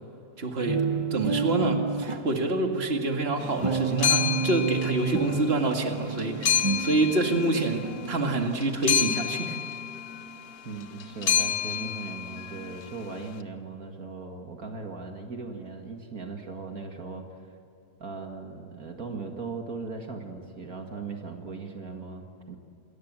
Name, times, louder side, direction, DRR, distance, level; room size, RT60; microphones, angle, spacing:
voice 1, 0.4-0.8 1.1-9.6, right 2 dB, 40° right, 3 dB, 2.4 m, -27 dB
sound 1, 0.7-2.6 3.6-8.4, right 5 dB, 25° right, 0.8 m, -30 dB
sound 2, 3.4-13.3, left 9 dB, 80° left, 1.5 m, -30 dB
voice 2, 10.6-17.3 18.0-22.6, right 4 dB, 70° right, 3 dB, 2.4 m, -38 dB
28.0 x 21.0 x 7.6 m, 2.9 s
omnidirectional pair, 1.6 m